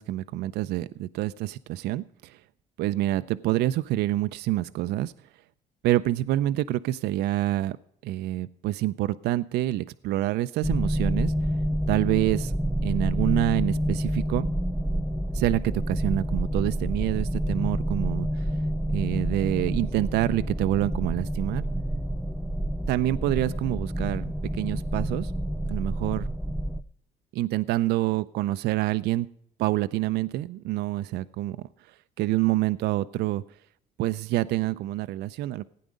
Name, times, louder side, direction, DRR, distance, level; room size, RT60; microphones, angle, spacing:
voice 1, 0.0-2.4 2.8-5.1 5.8-7.8 8.0-11.3 11.9-12.5 12.8-14.5 15.3-18.5 18.9-21.6 22.9-25.3 25.7-26.3 27.3-29.3 29.6-31.7 32.2-33.4 34.0-35.6, right 15 dB, 75° right, 13 dB, 0.4 m, -27 dB
sound 1, 10.6-26.8, equal, ahead, 0.5 m, -28 dB
16.0 x 9.4 x 5.1 m, 0.68 s
cardioid pair, 110°, 17 cm